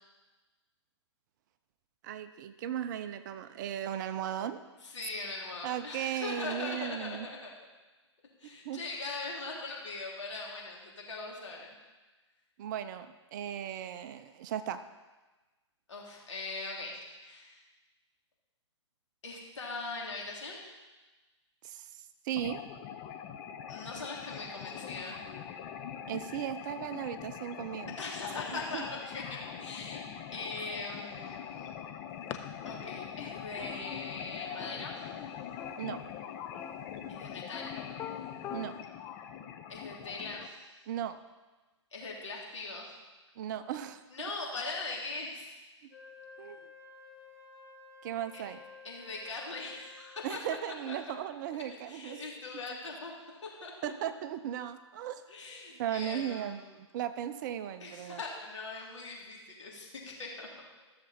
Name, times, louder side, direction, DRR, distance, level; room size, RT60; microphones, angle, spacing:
voice 1, 2.0-4.6 5.6-7.3 8.4-8.8 12.6-14.8 21.6-22.6 26.1-27.9 28.5-28.8 35.8-36.0 38.5-38.7 40.9-41.2 43.4-44.0 46.4-46.7 48.0-48.6 50.2-52.2 53.8-55.3 55.8-58.2, right 10 dB, 40° right, 11 dB, 0.7 m, -37 dB
voice 2, 4.8-7.5 8.4-11.8 15.9-17.6 19.2-20.6 23.7-25.2 28.0-30.0 30.3-31.7 32.6-34.9 37.1-37.7 39.7-40.6 41.9-42.9 44.1-45.5 48.3-48.4 48.8-50.4 51.8-53.9 55.3-56.7 57.8-60.5, left 3 dB, 75° left, -3 dB, 3.2 m, -41 dB
sound 1, 22.4-40.5, left 9 dB, 30° left, 0.8 m, -43 dB
sound 2, 32.3-32.4 32.6-35.2 35.6-36.1 36.5-38.9, left 9 dB, 15° left, 0.4 m, -44 dB
Wind instrument woodwind instrument, 45.9-50.3, left 4 dB, 55° left, 3.1 m, -53 dB
14.0 x 6.9 x 4.3 m, 1.2 s
hypercardioid pair, 125°, 15 cm